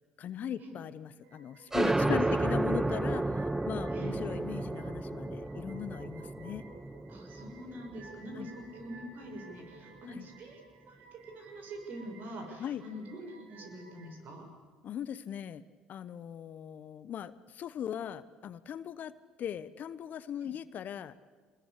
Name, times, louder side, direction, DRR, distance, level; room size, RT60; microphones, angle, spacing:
voice 1, 0.2-6.6 8.4-8.5 10.1-10.3 12.6-12.8 14.8-19.1 19.4-21.2, left 9 dB, 50° left, 16 dB, 1.0 m, -39 dB
sound 1, 1.2-14.1, right 3 dB, 75° right, 4.4 m, -55 dB
sound 2, 1.7-9.0, right 2 dB, 10° right, 0.8 m, -32 dB
voice 2, 3.9-4.2 7.1-10.6 10.8-14.5 20.4-20.5, equal, 55° right, 4 dB, 6.6 m, -45 dB
25.5 x 21.0 x 8.4 m, 1.5 s
hypercardioid pair, 65°, 4 cm